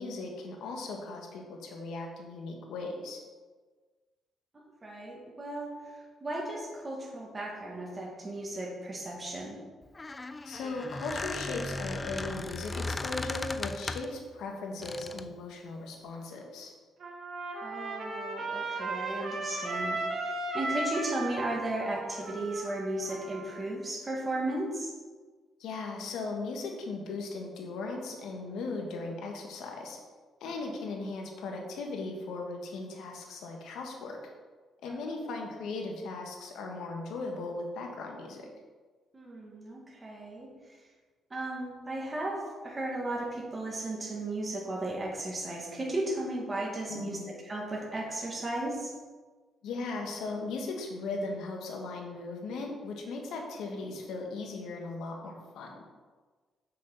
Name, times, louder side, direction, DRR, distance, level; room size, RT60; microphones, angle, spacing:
voice 1, 0.0-3.2 10.4-16.7 25.6-30.0 30.4-34.2 34.8-38.5 46.9-47.3 49.6-55.8, left 3 dB, 80° left, 1 dB, 1.5 m, -38 dB
voice 2, 4.8-9.6 17.6-24.9 30.4-30.8 34.9-35.2 39.1-40.8 41.3-47.2 47.4-48.9, right 1 dB, 25° right, -3 dB, 2.2 m, -35 dB
Squeak, 9.8-14.2 14.8-15.3, left 2 dB, 25° left, 0.4 m, -37 dB
Trumpet, 17.0-23.6, right 2 dB, 55° right, 1.5 m, -36 dB
7.3 x 6.5 x 4.0 m, 1.4 s
cardioid pair, 90°, 0 cm